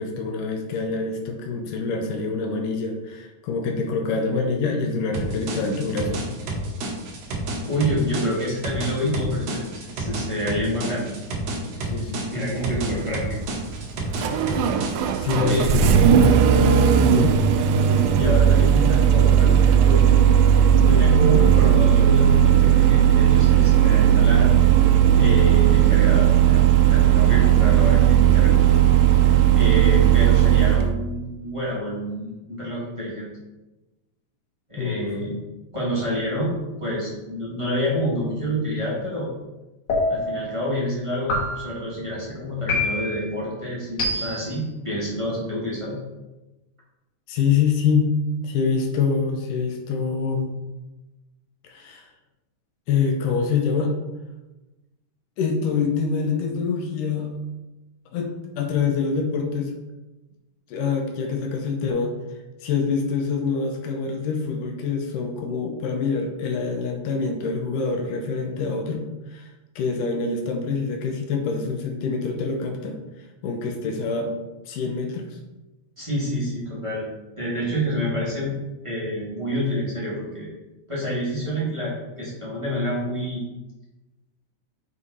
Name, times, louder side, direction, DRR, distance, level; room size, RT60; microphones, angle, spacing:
voice 1, 0.0-6.3 11.8-12.2 15.2-15.9 17.1-17.4 34.8-35.0 47.3-48.1 48.4-50.5 51.6-52.1 52.9-53.9 55.4-57.3 58.1-58.3 58.6-59.7 60.7-62.2 62.6-69.5 69.8-73.0 73.4-74.4 74.7-75.4, left 5 dB, 75° left, 2 dB, 2.1 m, -25 dB
sound 1, 5.1-15.8, right 1 dB, 60° right, 1.8 m, -31 dB
voice 2, 7.7-11.1 12.3-13.4 15.4-15.7 17.8-20.0 20.8-24.5 25.1-28.8 29.5-33.3 34.7-35.4 35.7-39.3 40.1-46.0 76.0-77.1 77.4-78.6 78.8-80.5 80.9-83.4, equal, 25° right, -8 dB, 0.7 m, -28 dB
Engine starting, 12.5-30.9, right 9 dB, 85° right, 1.9 m, -16 dB
sound 2, 39.9-40.5 41.3-41.9 42.7-43.3 44.0-44.6, left 2 dB, 55° left, 2.3 m, -25 dB
7.2 x 4.8 x 4.1 m, 1.1 s
omnidirectional pair, 4.4 m